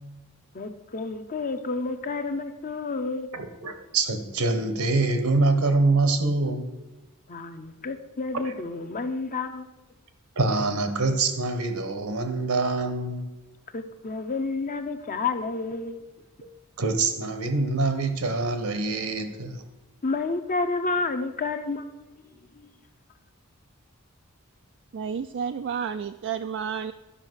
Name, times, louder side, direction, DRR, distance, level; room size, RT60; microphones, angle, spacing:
voice 1, 0.5-3.3 7.3-9.7 13.7-16.0 20.0-21.9 22.5-22.7, left 3 dB, 40° left, 8 dB, 0.7 m, -30 dB
voice 2, 3.3-6.7 8.4-8.5 10.4-13.3 16.4-16.5 16.8-19.6, right 3 dB, 80° right, 9 dB, 1.2 m, -25 dB
voice 3, 24.9-26.9, right 7 dB, 55° right, 9 dB, 0.3 m, -31 dB
11.5 x 5.6 x 6.3 m, 1.1 s
head